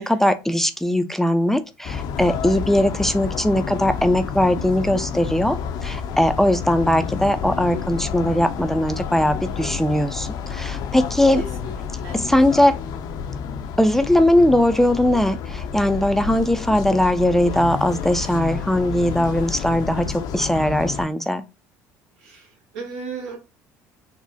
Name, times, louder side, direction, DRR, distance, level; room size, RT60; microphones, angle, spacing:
voice 1, 0.0-5.6 5.8-11.4 12.1-12.8 13.8-21.4, left 1 dB, 5° left, 0.4 m, -20 dB
sound 1, 1.8-21.1, left 7 dB, 60° left, 0.5 m, -30 dB
voice 2, 11.3-12.2 22.2-22.5 22.7-23.4, right 4 dB, 85° right, 1.3 m, -35 dB
3.8 x 2.0 x 2.5 m
supercardioid pair, 80°, 8 cm